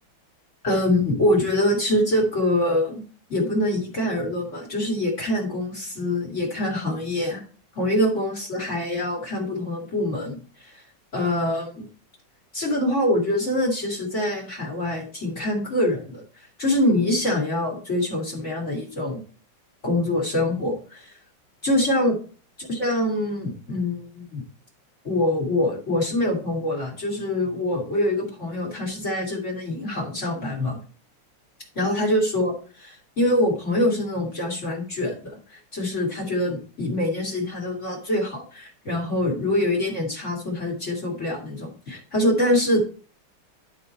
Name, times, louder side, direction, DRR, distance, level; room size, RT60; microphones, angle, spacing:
voice 1, 0.6-3.0 3.3-7.4 7.7-10.8 11.1-11.9 12.5-16.2 16.6-19.2 19.8-21.1 21.6-22.2 22.6-24.4 25.0-30.8 31.8-42.8, left 1 dB, 35° left, 0 dB, 2.4 m, -24 dB
11.5 x 3.9 x 4.2 m, 0.39 s
omnidirectional pair, 2.3 m